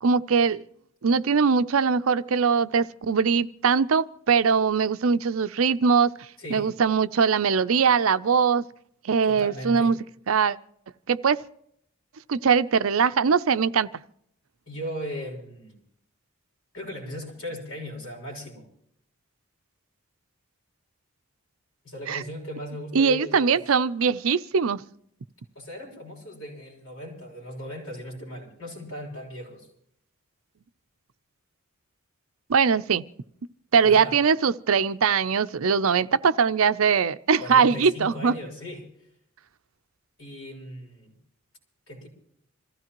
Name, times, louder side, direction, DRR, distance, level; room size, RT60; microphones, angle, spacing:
voice 1, 0.0-0.6 1.0-6.1 6.5-8.6 9.0-10.0 10.3-10.6 11.1-11.4 12.3-13.9 22.1-22.2 22.9-24.8 32.5-33.0 33.7-38.3, right 6 dB, 70° right, 0.5 m, -21 dB
voice 2, 6.4-6.7 9.2-10.0 14.7-15.8 16.7-18.7 21.8-23.6 25.5-29.7 33.8-34.2 37.3-38.9 40.2-41.1 41.9-42.1, equal, 75° left, 6.4 m, -37 dB
26.5 x 15.5 x 3.0 m
head